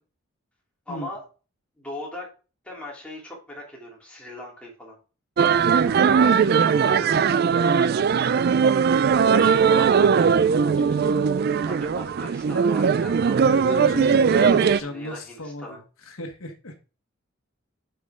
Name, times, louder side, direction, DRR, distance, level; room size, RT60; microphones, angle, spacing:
voice 1, 0.9-1.2 1.8-2.3 2.6-5.0 5.8-6.9 7.3-8.3 9.2-11.2 11.6-13.8 14.3-15.8, equal, 5° left, -4 dB, 3.1 m, -39 dB
sound 1, 5.4-14.8, right 6 dB, 50° right, 0.3 m, -19 dB
voice 2, 13.4-16.7, left 1 dB, 85° left, 5 dB, 1.4 m, -35 dB
7.5 x 5.7 x 3.6 m, 0.34 s
head